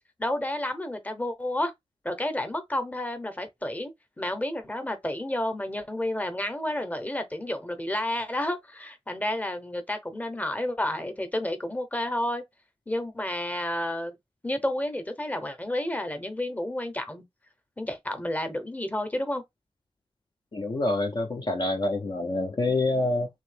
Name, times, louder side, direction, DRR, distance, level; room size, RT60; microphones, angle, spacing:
voice 1, 0.2-1.7 2.0-3.9 4.2-12.4 12.9-14.2 14.4-17.2 17.8-19.4, left 1 dB, 15° left, 0.9 m, -30 dB
voice 2, 20.5-23.3, left 2 dB, 40° left, 0.6 m, -26 dB
3.0 x 2.8 x 3.3 m
cardioid pair, 65°, 11 cm